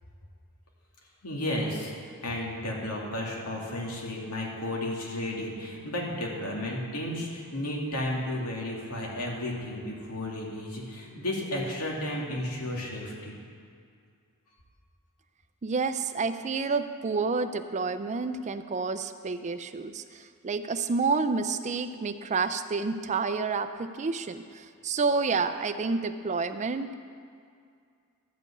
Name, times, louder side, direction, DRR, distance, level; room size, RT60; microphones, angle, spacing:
voice 1, 1.2-1.9 2.2-13.4, left 1 dB, 90° left, -2 dB, 2.4 m, -33 dB
voice 2, 15.6-26.9, right 4 dB, 30° right, 10 dB, 0.4 m, -29 dB
12.5 x 5.4 x 8.5 m, 2.3 s
head